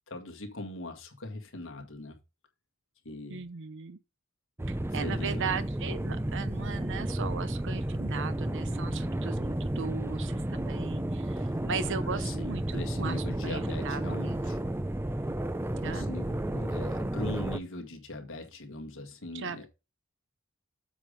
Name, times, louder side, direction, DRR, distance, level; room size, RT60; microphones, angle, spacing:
voice 1, 0.1-2.2 3.1-3.5 5.0-5.6 11.4-11.5 12.0-14.6 15.8-19.7, left 2 dB, 65° left, 1.9 m, -41 dB
voice 2, 3.3-4.0 4.9-14.5 15.8-16.1 19.3-19.7, right 5 dB, 60° right, 0.7 m, -37 dB
sound 1, 4.6-17.6, right 1 dB, 10° right, 0.5 m, -32 dB
7.7 x 5.1 x 5.1 m
head